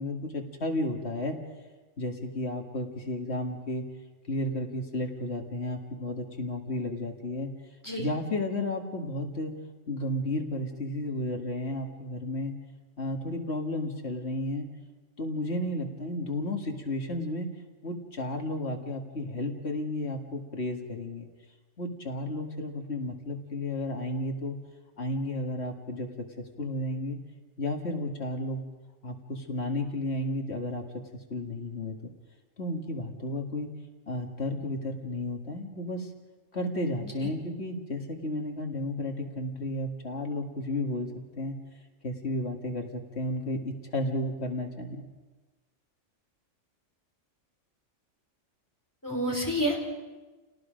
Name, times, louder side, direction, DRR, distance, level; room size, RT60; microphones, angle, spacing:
voice 1, 0.0-1.4 2.0-3.8 4.3-7.5 8.0-9.5 9.9-12.5 13.0-14.7 15.2-17.6 17.8-21.3 21.8-24.6 25.0-27.2 27.6-28.6 29.0-30.9 31.3-32.1 32.6-33.7 34.1-36.1 36.5-41.5 42.0-45.0, left 1 dB, 55° left, 2 dB, 2.3 m, -33 dB
voice 2, 49.0-49.9, equal, 15° left, -1 dB, 3.7 m, -29 dB
29.0 x 18.5 x 5.2 m, 1.3 s
omnidirectional pair, 1.3 m